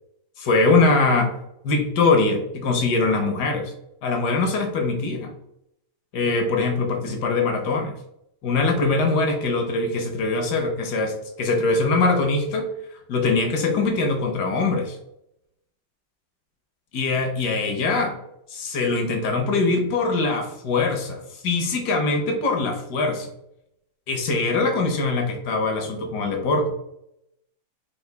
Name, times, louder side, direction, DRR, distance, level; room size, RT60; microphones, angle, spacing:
voice 1, 0.4-1.3 1.6-3.7 4.0-5.3 6.1-7.9 8.4-12.7 13.1-15.0 16.9-18.1 18.5-23.3 24.1-26.7, left 3 dB, 70° left, 4 dB, 1.1 m, -22 dB
4.8 x 2.5 x 3.2 m, 0.79 s
omnidirectional pair, 2.1 m